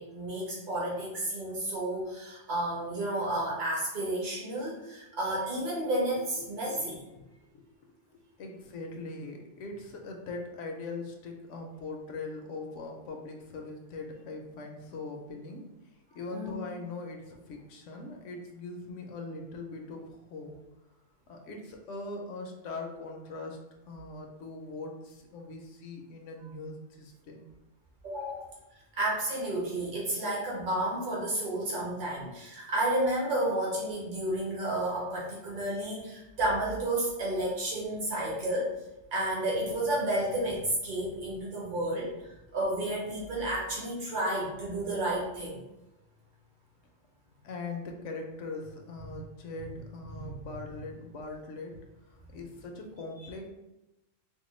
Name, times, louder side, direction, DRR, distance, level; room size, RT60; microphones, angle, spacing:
voice 1, 0.0-7.0 16.3-16.6 28.0-28.5 28.9-38.7 39.1-42.1 42.5-45.6 50.1-50.5 52.2-52.3 53.2-53.5, right 1 dB, 40° right, -5 dB, 1.2 m, -31 dB
voice 2, 7.2-7.7 8.1-15.6 16.1-20.5 21.3-23.6 23.9-27.4 47.4-51.8 52.3-53.5, left 3 dB, 75° left, 2 dB, 1.0 m, -41 dB
4.4 x 2.2 x 3.1 m, 0.98 s
omnidirectional pair, 1.3 m